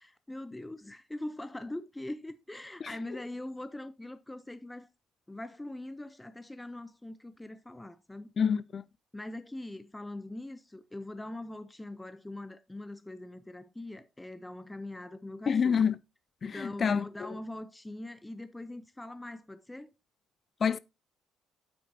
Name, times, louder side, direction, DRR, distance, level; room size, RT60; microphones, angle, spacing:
voice 1, 0.0-4.9 5.3-8.3 9.1-15.8 16.4-19.9, left 1 dB, 10° left, 0.7 m, -42 dB
voice 2, 8.4-8.8 15.5-15.9 16.4-17.1 20.6-20.8, left 6 dB, 40° left, 0.4 m, -27 dB
8.8 x 8.6 x 2.8 m
figure-of-eight pair, 45°, 0 cm